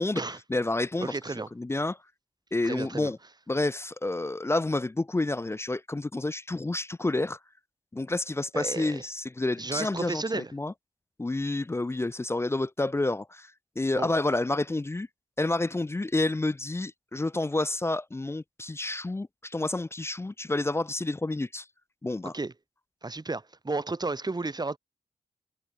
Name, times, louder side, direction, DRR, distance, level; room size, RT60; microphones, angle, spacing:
voice 1, 0.5-2.0 2.5-3.2 3.5-7.4 7.9-10.7 11.2-15.1 15.4-21.7 22.0-22.3, left 2 dB, 15° left, 0.4 m, -29 dB
voice 2, 1.0-1.5 2.6-3.1 8.5-9.0 9.6-10.5 14.0-14.1 22.3-22.5 23.0-24.8, right 3 dB, 25° right, 1.3 m, -32 dB
supercardioid pair, 40°, 15 cm